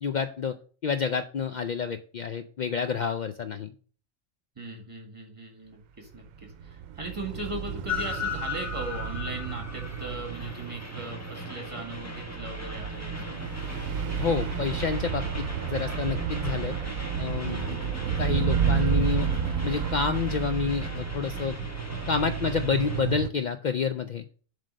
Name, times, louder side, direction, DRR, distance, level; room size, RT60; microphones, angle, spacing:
voice 1, 0.0-0.6 0.8-3.7 14.2-16.8 17.2-17.8 18.2-19.3 19.6-21.6 22.1-24.2, left 6 dB, 80° left, 8 dB, 0.4 m, -29 dB
voice 2, 4.5-13.4 17.5-17.8, right 2 dB, 25° right, 2 dB, 1.8 m, -39 dB
sound 1, 6.4-23.3, right 7 dB, 90° right, 1.0 m, -31 dB
Train, 7.9-23.0, left 4 dB, 15° left, 1.0 m, -39 dB
7.5 x 3.4 x 6.3 m, 0.41 s
omnidirectional pair, 1.3 m